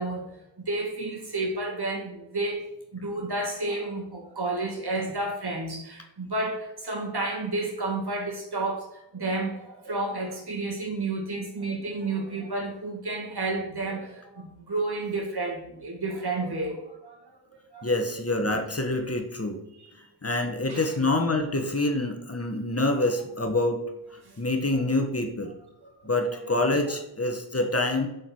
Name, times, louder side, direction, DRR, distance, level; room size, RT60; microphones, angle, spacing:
voice 1, 0.0-2.7 2.9-17.2 17.7-17.9 20.7-20.9 24.3-24.4 25.8-25.9 26.4-26.5, right 2 dB, 55° right, 1 dB, 2.3 m, -31 dB
voice 2, 17.8-19.6 20.2-23.8 24.4-25.6 26.0-28.1, left 2 dB, 30° left, 4 dB, 1.5 m, -26 dB
7.1 x 5.2 x 6.1 m, 0.88 s
cardioid pair, 45°, 45 cm